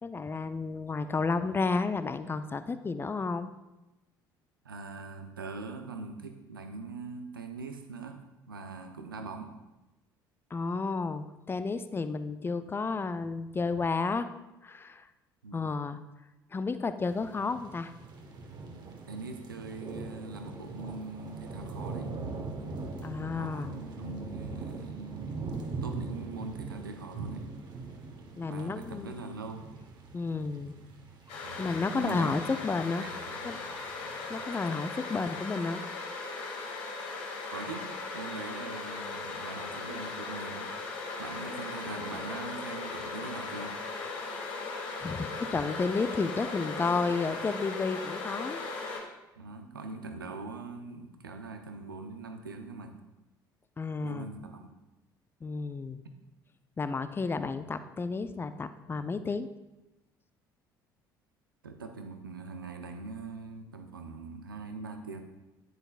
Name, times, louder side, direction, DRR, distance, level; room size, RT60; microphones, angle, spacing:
voice 1, 0.0-3.5 10.5-14.3 14.6-15.1 15.5-16.0 16.5-17.9 23.0-23.8 28.4-29.1 30.1-30.8 31.6-33.0 33.4-33.6 34.3-35.8 45.0-48.6 53.8-54.3 55.4-56.0 56.8-59.5, left 4 dB, 20° left, 12 dB, 0.5 m, -32 dB
voice 2, 4.6-9.5 15.4-15.7 19.1-22.2 23.3-25.4 25.8-27.4 28.5-29.6 31.4-31.6 31.9-32.6 32.9-33.7 37.5-37.9 38.1-40.8 41.2-43.7 46.7-47.3 49.4-53.0 54.0-54.7 61.6-65.2, right 3 dB, 85° right, 6 dB, 0.7 m, -42 dB
sound 1, 17.0-34.5, right 3 dB, 40° right, 1.3 m, -42 dB
sound 2, 31.3-49.0, left 3 dB, 60° left, 1.6 m, -38 dB
9.9 x 9.2 x 2.5 m, 1.0 s
figure-of-eight pair, 55°, 11 cm